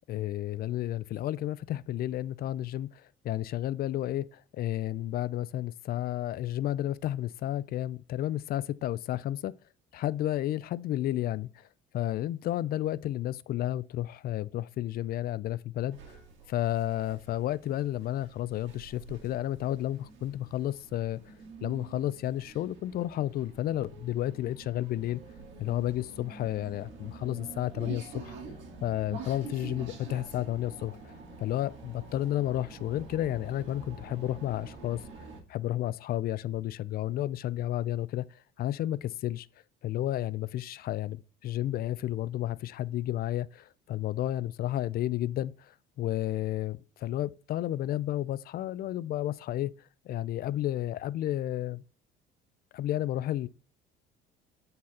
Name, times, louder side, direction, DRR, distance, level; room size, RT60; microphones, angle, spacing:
voice 1, 0.1-9.5 9.9-11.7 11.9-16.2 16.5-21.3 21.6-25.2 25.6-28.3 28.8-31.1 31.4-39.5 39.8-51.8 52.7-53.5, left 13 dB, 50° left, 0.4 m, -32 dB
sound 1, 15.9-35.4, right 4 dB, 70° right, 2.0 m, -47 dB
8.7 x 4.0 x 4.2 m
cardioid pair, 125°, 20 cm